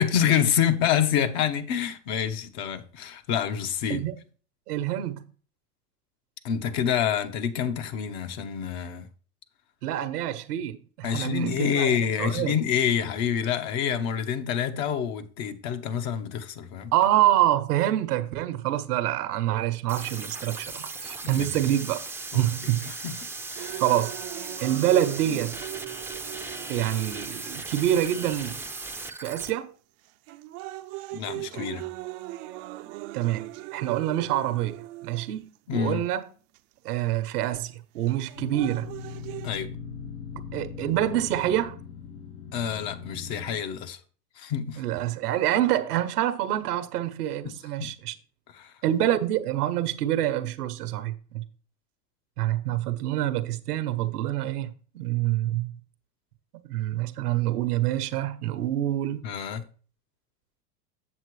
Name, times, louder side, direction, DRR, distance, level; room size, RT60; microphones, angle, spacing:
voice 1, 0.0-4.0 6.4-9.1 11.0-16.9 21.2-21.6 22.3-23.2 23.5-23.8 31.1-31.9 35.7-36.0 39.4-39.7 42.5-44.0 44.4-44.8 47.4-47.5 47.8-47.9 48.5-48.7 52.7-52.8 59.2-59.7, left 8 dB, 50° left, 1.1 m, -27 dB
voice 2, 4.7-5.2 9.8-11.9 12.2-12.6 16.9-22.0 22.3-22.9 23.8-24.1 24.6-25.5 26.7-28.6 29.2-29.7 33.1-36.3 36.8-38.9 40.5-41.8 44.8-48.1 48.8-51.4 52.4-55.7 56.5-59.2, right 13 dB, 75° right, 1.0 m, -26 dB
sound 1, 19.9-29.5, right 3 dB, 5° right, 0.6 m, -37 dB
sound 2, 23.6-27.6 28.3-28.4 29.3-29.6 30.0-35.6 36.5-36.6 38.1-39.6, right 18 dB, 50° right, 0.6 m, -39 dB
sound 3, 38.3-43.6, left 6 dB, 80° left, 3.1 m, -40 dB
7.9 x 7.5 x 3.2 m
hypercardioid pair, 90°, 46 cm